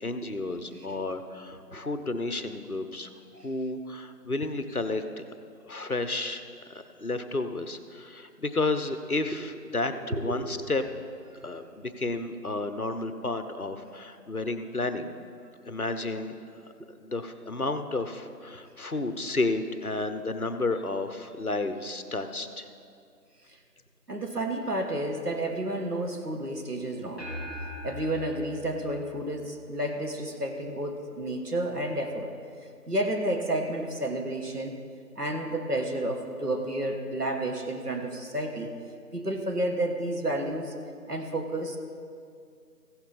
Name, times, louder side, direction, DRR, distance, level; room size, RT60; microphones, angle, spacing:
voice 1, 0.0-5.2 5.7-6.4 6.7-9.9 10.2-10.8 11.4-15.1 15.7-16.3 17.0-22.7, left 2 dB, 65° left, 9 dB, 0.9 m, -31 dB
voice 2, 9.9-10.6 15.7-15.8 24.1-27.3 27.8-32.4 32.9-34.8 35.1-38.7 39.1-40.7 41.1-41.8, right 1 dB, 70° right, 4 dB, 1.6 m, -31 dB
sound 1, 27.2-29.8, left 1 dB, 40° right, 3.2 m, -40 dB
15.5 x 11.5 x 4.2 m, 2.4 s
figure-of-eight pair, 180°, 48 cm